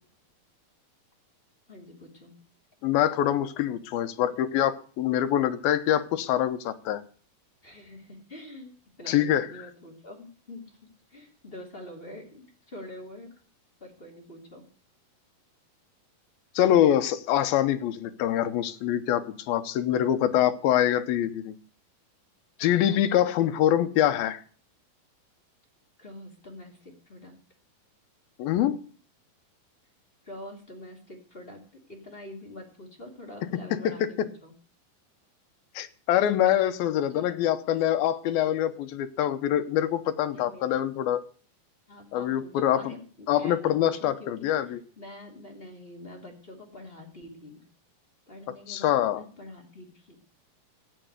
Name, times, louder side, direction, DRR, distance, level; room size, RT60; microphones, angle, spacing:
voice 1, 1.7-2.4 7.6-8.7 9.0-10.8 11.1-13.3 13.8-14.7 22.6-23.3 26.0-27.4 30.2-31.6 31.9-34.5 37.0-37.4 40.3-40.9 41.9-44.5 45.0-47.6 48.3-50.2, left 1 dB, 15° left, 1 dB, 2.4 m, -45 dB
voice 2, 2.8-7.0 9.1-9.5 16.6-21.5 22.6-24.4 28.4-28.8 33.7-34.1 35.8-41.2 42.1-42.8 43.3-44.8 48.7-49.2, left 11 dB, 80° left, 10 dB, 2.7 m, -25 dB
14.0 x 8.9 x 8.1 m, 0.43 s
omnidirectional pair, 4.3 m